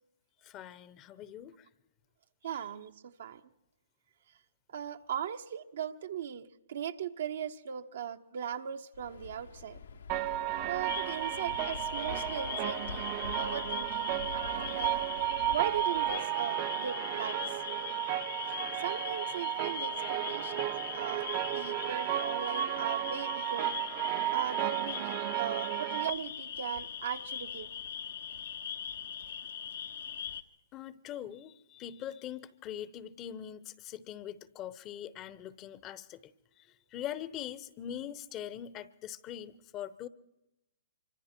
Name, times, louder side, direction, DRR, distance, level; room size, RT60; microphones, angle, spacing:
voice 1, 0.4-1.7 30.7-36.3 36.9-40.1, left 10 dB, 30° left, 17 dB, 0.8 m, -42 dB
voice 2, 2.4-3.4 4.7-9.8 10.6-13.1 13.4-15.0 15.5-17.6 18.8-23.7 24.3-27.7, right 8 dB, 65° right, 8 dB, 1.0 m, -38 dB
Waves surf, 8.9-16.2, left 5 dB, 85° left, 1.5 m, -47 dB
sound 1, 10.1-26.1, right 14 dB, 35° right, 0.6 m, -34 dB
sound 2, 10.8-30.4, left 8 dB, 70° left, 0.9 m, -40 dB
25.0 x 24.5 x 4.5 m, 0.93 s
hypercardioid pair, 130°, 0 cm